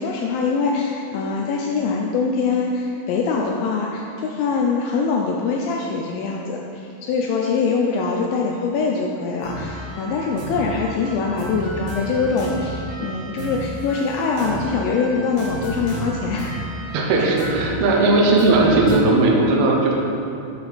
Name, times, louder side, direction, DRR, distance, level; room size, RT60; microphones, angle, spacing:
voice 1, 0.0-16.6, left 4 dB, 80° left, -1 dB, 2.1 m, -23 dB
sound 1, 9.4-19.0, right 1 dB, 55° right, 1.9 m, -32 dB
voice 2, 16.9-19.9, right 2 dB, 80° right, -1 dB, 1.6 m, -17 dB
6.5 x 6.0 x 4.0 m, 2.6 s
omnidirectional pair, 4.5 m